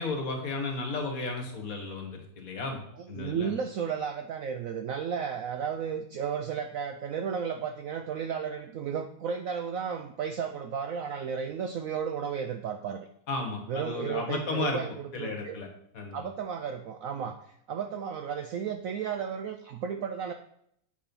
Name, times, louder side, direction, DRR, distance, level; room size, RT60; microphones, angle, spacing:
voice 1, 0.0-2.8 3.1-3.5 13.3-14.8 15.1-15.7 15.9-16.2, left 3 dB, 50° left, 3 dB, 1.6 m, -33 dB
voice 2, 3.0-13.1 13.7-15.6 16.1-20.3, right 7 dB, 85° right, 6 dB, 0.7 m, -33 dB
7.7 x 4.3 x 5.2 m, 0.70 s
omnidirectional pair, 2.0 m